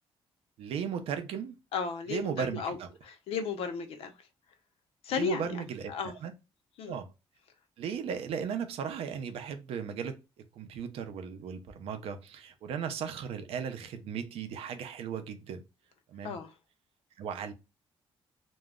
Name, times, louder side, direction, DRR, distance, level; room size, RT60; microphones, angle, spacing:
voice 1, 0.6-1.6 2.1-2.9 5.1-5.9 6.2-6.3 6.9-7.1 7.8-10.2 10.6-15.6 16.1-16.4 17.2-17.5, right 7 dB, 90° right, 0.5 m, -36 dB
voice 2, 1.7-2.8 3.0-4.1 5.0-6.2 6.8-7.0 16.2-16.5, left 5 dB, 85° left, 0.6 m, -34 dB
2.2 x 2.0 x 3.4 m
cardioid pair, 160°, 10 cm